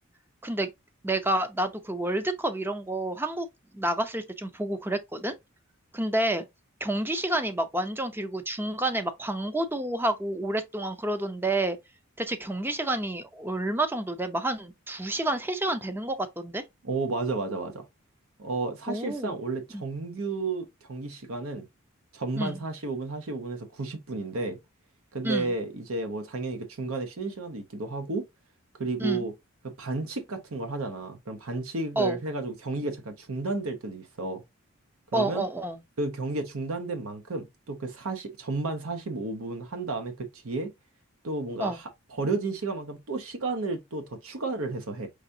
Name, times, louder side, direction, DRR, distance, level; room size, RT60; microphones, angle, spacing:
voice 1, 1.0-3.5 3.7-5.3 5.9-6.5 6.8-11.8 12.2-16.6 18.9-19.4 19.7-19.8 22.4-22.6 25.2-25.5 29.0-29.3 32.0-32.2 35.1-35.8 41.6-41.8, right 1 dB, 10° right, 0.5 m, -29 dB
voice 2, 16.8-17.9 18.4-21.7 22.1-24.6 25.1-28.2 28.8-29.3 29.6-34.4 35.1-35.4 36.0-40.7 41.2-45.1, right 3 dB, 75° right, 0.8 m, -32 dB
5.0 x 3.4 x 2.6 m
head